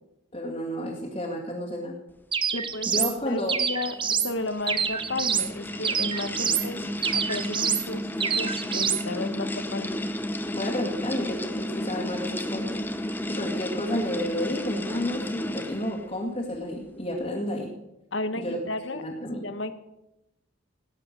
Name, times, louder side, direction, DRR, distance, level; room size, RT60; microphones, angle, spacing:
voice 1, 0.3-1.9 2.9-3.6 6.4-6.9 10.5-12.7 13.3-17.7 18.4-18.6 18.9-19.4, left 1 dB, 30° left, -5 dB, 2.2 m, -31 dB
sound 1, 2.3-3.1 3.5-4.3 4.7-5.5 5.8-6.7 7.0-7.9 8.2-9.0, right 7 dB, 25° right, 0.7 m, -26 dB
voice 2, 2.5-3.9 4.2-6.8 7.1-10.0 18.1-19.0 19.3-19.7, left 2 dB, 70° left, 10 dB, 1.2 m, -33 dB
sound 2, 3.9-16.1, left 1 dB, 10° left, 0.7 m, -33 dB
18.0 x 9.7 x 6.6 m, 0.94 s
head